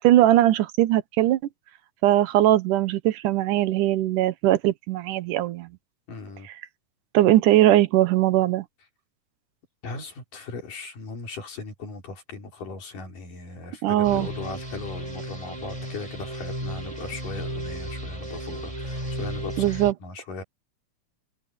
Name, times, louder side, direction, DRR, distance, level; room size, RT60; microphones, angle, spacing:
voice 1, 0.0-1.4 2.0-5.7 7.1-8.6 13.8-14.3 19.6-19.9, right 14 dB, 85° right, 2.5 m, -20 dB
voice 2, 6.1-6.5 9.8-20.4, left 3 dB, 90° left, 6.5 m, -38 dB
sound 1, 14.0-19.9, right 1 dB, 10° right, 6.6 m, -34 dB
omnidirectional pair, 3.6 m